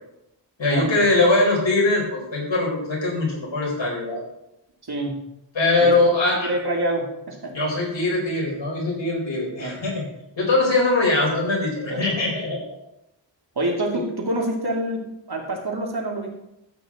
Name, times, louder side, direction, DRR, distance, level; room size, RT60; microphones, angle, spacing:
voice 1, 0.6-4.2 5.5-6.5 7.5-10.0 10.4-12.6 13.9-14.0, left 2 dB, 85° left, -2 dB, 4.4 m, -21 dB
voice 2, 4.9-5.2 5.8-6.0 6.3-7.5 9.6-9.8 11.9-12.1 13.6-16.3, right 1 dB, 60° right, -1 dB, 2.5 m, -26 dB
13.0 x 8.3 x 3.8 m, 0.85 s
wide cardioid pair, 70°, 43 cm